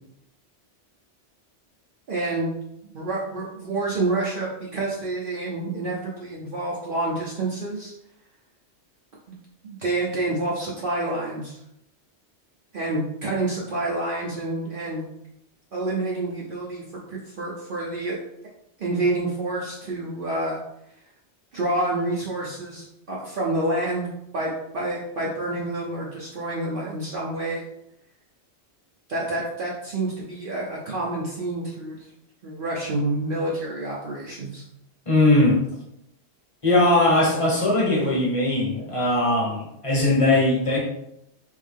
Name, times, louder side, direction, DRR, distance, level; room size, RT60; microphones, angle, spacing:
voice 1, 2.1-2.5 2.9-7.9 9.6-11.6 12.7-15.0 15.7-16.8 17.1-18.2 18.8-20.6 21.5-24.1 24.3-27.6 29.1-32.0 32.4-34.6, right 2 dB, 55° right, -5 dB, 0.8 m, -28 dB
voice 2, 35.1-35.6 36.6-40.8, left 2 dB, 30° left, -3 dB, 1.1 m, -20 dB
3.6 x 3.0 x 3.5 m, 0.78 s
omnidirectional pair, 1.2 m